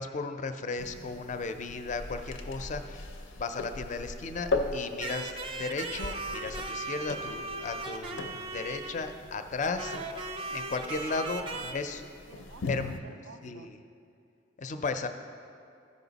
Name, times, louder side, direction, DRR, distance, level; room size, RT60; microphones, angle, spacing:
voice 1, 0.0-3.0 3.3-10.1 10.5-12.1 12.7-13.0 13.4-13.7 14.6-15.1, left 4 dB, 40° left, 8 dB, 0.4 m, -35 dB
sound 1, 0.8-13.0, left 3 dB, 85° left, 0.6 m, -39 dB
sound 2, 5.0-9.3 9.8-11.7, right 3 dB, 30° right, 0.4 m, -38 dB
voice 2, 11.1-13.7, right 5 dB, 85° right, 10 dB, 0.4 m, -51 dB
14.0 x 5.4 x 4.0 m, 2.5 s
head